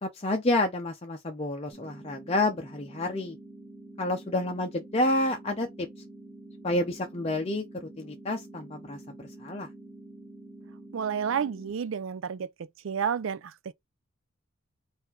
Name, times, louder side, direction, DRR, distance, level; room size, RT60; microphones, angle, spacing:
voice 1, 0.0-3.4 4.0-5.9 6.6-7.6 8.0-9.0 9.4-9.7, left 1 dB, 30° left, 0.6 m, -29 dB
sound 1, 1.7-11.7, right 2 dB, 5° right, 1.8 m, -47 dB
voice 2, 10.9-12.5 12.8-13.7, right 7 dB, 65° right, 0.4 m, -30 dB
3.8 x 2.6 x 4.3 m
head